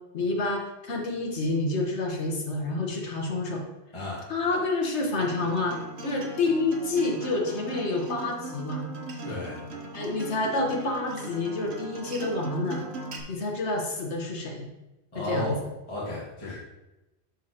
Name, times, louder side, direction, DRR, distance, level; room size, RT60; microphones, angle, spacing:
voice 1, 0.1-3.6 4.3-8.9 9.9-12.8 13.3-14.7 15.1-15.6, left 2 dB, 80° left, 1 dB, 1.4 m, -28 dB
Acoustic guitar, 5.2-13.2, right 2 dB, 75° right, 1.2 m, -39 dB
voice 2, 9.2-9.6 15.1-15.6 15.9-16.5, left 1 dB, 25° left, -8 dB, 1.7 m, -32 dB
11.5 x 4.0 x 2.8 m, 0.99 s
omnidirectional pair, 1.1 m